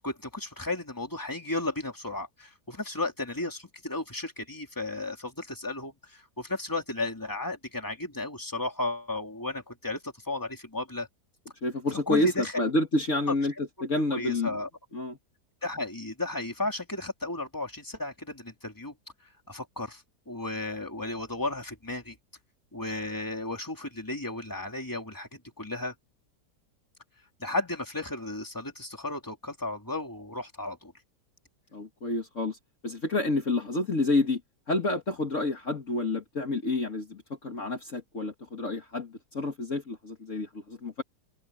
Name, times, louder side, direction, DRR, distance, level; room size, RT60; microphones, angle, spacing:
voice 1, 0.0-11.1 12.1-12.5 14.1-14.7 15.6-18.9 19.5-22.1 22.7-25.3 25.6-25.9 27.4-30.9, left 2 dB, 10° left, 3.2 m, -34 dB
voice 2, 11.6-14.5 14.9-15.2 31.7-32.6 32.8-34.4 34.7-41.0, left 2 dB, 45° left, 2.2 m, -29 dB
omnidirectional pair, 1.8 m